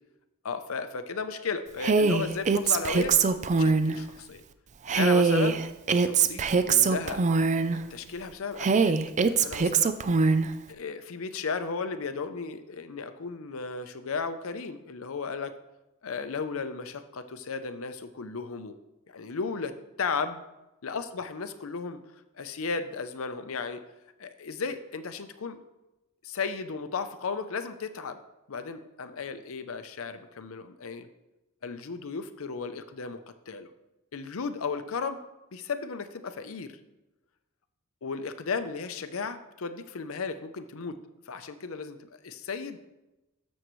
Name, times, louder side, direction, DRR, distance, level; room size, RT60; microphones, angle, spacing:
voice 1, 0.4-3.2 3.6-4.4 4.9-5.6 6.0-7.2 7.7-8.9 9.2-9.9 10.7-15.5 16.0-18.8 19.1-20.4 20.8-23.8 24.2-25.6 26.2-28.2 28.5-31.1 31.6-33.2 33.5-33.7 34.1-35.2 35.5-36.8 38.0-41.0 41.3-42.8, left 5 dB, 70° left, 10 dB, 0.6 m, -35 dB
Female speech woman speaking, 1.8-4.0 4.9-7.8 8.6-10.5, right 4 dB, 35° right, 0.4 m, -23 dB
13.0 x 6.3 x 3.1 m, 0.99 s
head